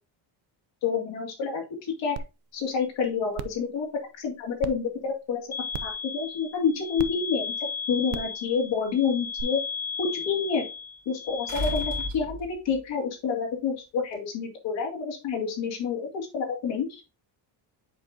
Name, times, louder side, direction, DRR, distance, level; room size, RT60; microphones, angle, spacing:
voice 1, 0.8-2.2 2.5-3.9 4.2-5.4 5.8-7.5 7.9-9.6 10.0-10.6 11.1-17.0, left 6 dB, 80° left, -1 dB, 2.3 m, -28 dB
sound 1, 2.2-2.3 2.7-2.8 3.3-3.6 4.6-4.7 5.7-6.0 7.0-7.1 8.1-8.3 9.4-9.5, right 10 dB, 70° right, 0.6 m, -34 dB
sound 2, 5.5-12.1, left 6 dB, 20° left, 0.6 m, -35 dB
sound 3, 8.2-8.3 11.5-12.8 14.1-14.2, right 1 dB, 40° right, 3.6 m, -33 dB
7.9 x 4.9 x 2.6 m, 0.28 s
cardioid pair, 170°, 43 cm